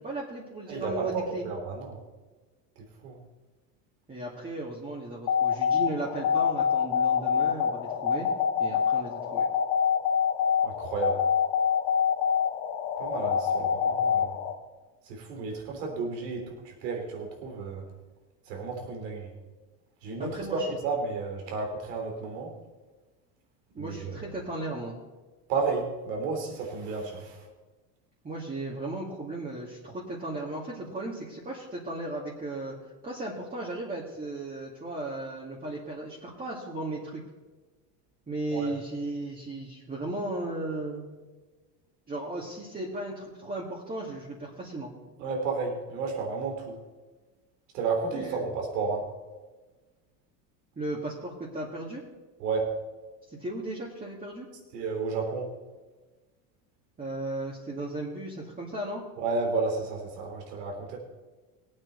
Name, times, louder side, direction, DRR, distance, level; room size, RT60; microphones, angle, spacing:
voice 1, 0.0-1.5 4.1-8.3 8.6-9.5 20.2-20.7 23.7-25.0 28.2-32.8 33.0-37.2 38.3-41.0 42.1-44.9 48.1-48.4 50.8-52.0 53.3-54.5 57.0-59.0, right 2 dB, 20° right, -5 dB, 2.4 m, -36 dB
voice 2, 0.7-2.0 2.8-3.2 10.6-11.2 13.0-14.4 15.1-17.8 18.5-19.3 20.0-22.5 23.8-24.1 25.5-27.4 38.5-38.7 45.2-46.8 47.7-49.1 52.4-52.8 54.7-55.5 59.2-61.0, right 4 dB, 80° right, 2 dB, 3.5 m, -32 dB
sound 1, 5.3-14.5, left 7 dB, 80° left, 1.7 m, -26 dB
18.5 x 8.8 x 4.1 m, 1.3 s
supercardioid pair, 105°, 48 cm